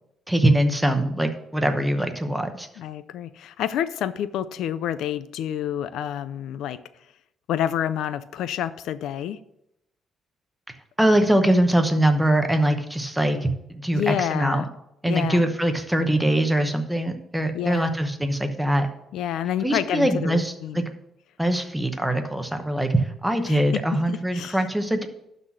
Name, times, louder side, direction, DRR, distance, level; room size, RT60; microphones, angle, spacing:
voice 1, 0.3-2.7 11.0-14.7 15.0-18.9 19.6-20.8 21.4-25.1, right 1 dB, 5° right, 6 dB, 0.9 m, -22 dB
voice 2, 2.8-6.8 7.5-9.4 13.9-14.7 15.0-15.4 17.5-17.9 19.1-20.9 23.5-24.6, left 10 dB, 85° left, 15 dB, 0.4 m, -28 dB
12.0 x 4.1 x 6.2 m, 0.81 s
cardioid pair, 135°, 0 cm